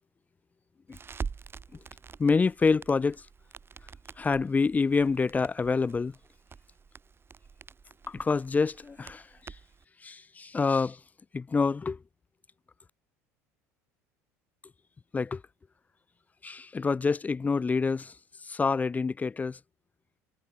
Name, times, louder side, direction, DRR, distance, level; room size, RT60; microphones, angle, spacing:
Crackle, 0.9-9.8, right 5 dB, 30° right, 5.9 m, -45 dB
voice 1, 2.2-3.3 4.2-6.2 8.1-9.6 10.0-11.0 11.3-12.0 15.1-15.4 16.4-19.6, left 4 dB, 20° left, 0.4 m, -27 dB
hypercardioid pair, 70°, 8 cm